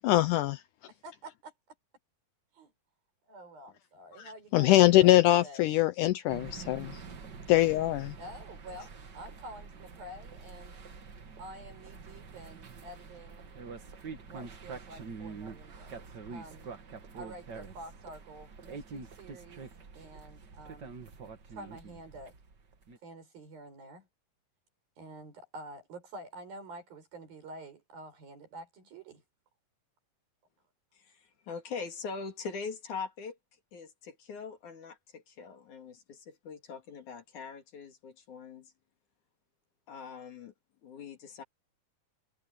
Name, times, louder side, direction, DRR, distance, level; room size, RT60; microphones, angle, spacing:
voice 1, 0.0-0.6 4.2-7.0 7.5-8.1, left 15 dB, 80° left, 1.9 m, -23 dB
voice 2, 0.9-1.5 2.5-2.7 3.3-5.2 5.4-5.7 8.2-10.8 11.4-13.5 14.3-16.0 16.3-16.7 17.1-19.7 20.0-20.9 21.5-22.3 23.0-24.1 25.0-29.2, right 1 dB, 80° right, 8.8 m, -48 dB
sound 1, 6.3-23.0, right 5 dB, 40° right, 1.8 m, -46 dB
voice 3, 30.9-33.4 33.7-38.7 39.9-40.5 40.8-41.4, left 5 dB, 60° left, 3.7 m, -42 dB
omnidirectional pair, 4.1 m